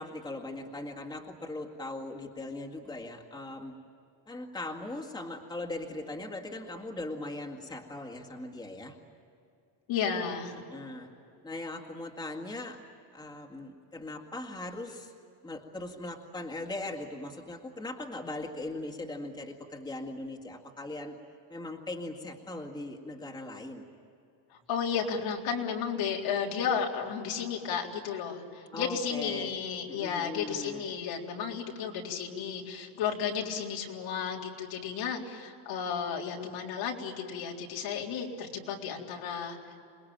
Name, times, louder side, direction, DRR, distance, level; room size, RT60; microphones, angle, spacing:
voice 1, 0.0-3.8 4.3-9.0 10.7-11.1 11.4-12.8 13.1-15.1 15.4-21.2 21.5-23.8 28.7-29.5 29.9-30.8, left 2 dB, 10° left, 0 dB, 2.0 m, -39 dB
voice 2, 9.9-10.6 24.5-39.6, left 7 dB, 80° left, -1 dB, 4.1 m, -33 dB
28.0 x 21.0 x 8.9 m, 2.6 s
cardioid pair, 165°, 46 cm